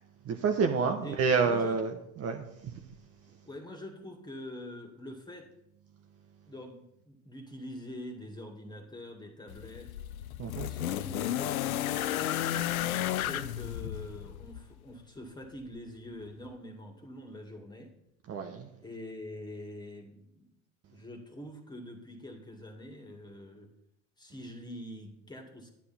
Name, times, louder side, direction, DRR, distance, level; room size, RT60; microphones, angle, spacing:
voice 1, 0.2-2.8 10.4-10.7 18.3-18.7, right 5 dB, 35° right, 4 dB, 1.1 m, -29 dB
voice 2, 1.0-1.8 3.4-5.5 6.5-9.9 10.6-12.4 13.1-17.9 18.8-20.5 20.9-23.7 24.2-25.7, left 1 dB, 10° left, 3 dB, 2.2 m, -45 dB
sound 1, 9.5-14.7 15.8-15.9, left 12 dB, 90° left, 0.6 m, -33 dB
10.5 x 9.6 x 4.3 m, 0.80 s
hypercardioid pair, 90°, 41 cm